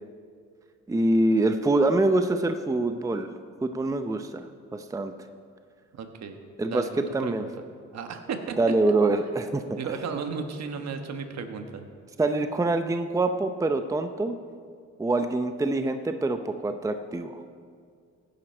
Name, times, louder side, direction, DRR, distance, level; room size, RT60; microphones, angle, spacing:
voice 1, 0.9-3.3 3.6-4.5 4.7-5.1 6.6-6.8 7.1-7.4 8.6-9.8 12.2-14.4 15.0-17.4, right 2 dB, 10° right, 8 dB, 0.6 m, -25 dB
voice 2, 5.9-6.4 6.7-7.5 7.9-8.6 9.8-11.8, right 5 dB, 60° right, 6 dB, 1.3 m, -34 dB
16.0 x 9.9 x 4.4 m, 2.2 s
cardioid pair, 90°, 30 cm